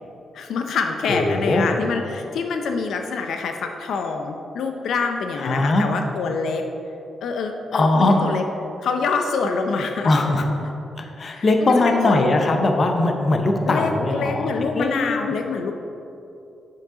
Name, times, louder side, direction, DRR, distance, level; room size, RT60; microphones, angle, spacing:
voice 1, 0.3-6.6 7.2-8.4 8.8-10.5 11.3-12.3 13.7-15.7, left 4 dB, 75° left, 4 dB, 0.5 m, -26 dB
voice 2, 1.1-1.7 5.4-5.9 7.7-8.3 10.0-10.5 11.0-15.2, left 2 dB, 35° left, 4 dB, 0.7 m, -20 dB
7.5 x 7.2 x 3.8 m, 2.8 s
wide cardioid pair, 140°, 0 cm